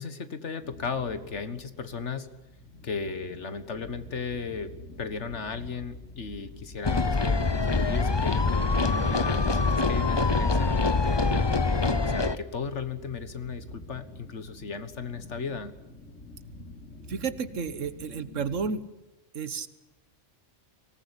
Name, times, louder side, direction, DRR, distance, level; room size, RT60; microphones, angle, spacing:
voice 1, 0.0-2.3 2.8-7.5 7.8-15.7, left 5 dB, 65° left, 11 dB, 1.8 m, -36 dB
sound 1, 0.6-18.7, left 1 dB, 90° left, 4.1 m, -47 dB
sound 2, 6.8-12.4, left 3 dB, 25° left, 0.8 m, -24 dB
voice 2, 17.1-18.8 19.3-19.7, right 5 dB, 80° right, 13 dB, 1.6 m, -31 dB
24.5 x 19.0 x 9.9 m, 0.99 s
omnidirectional pair, 1.3 m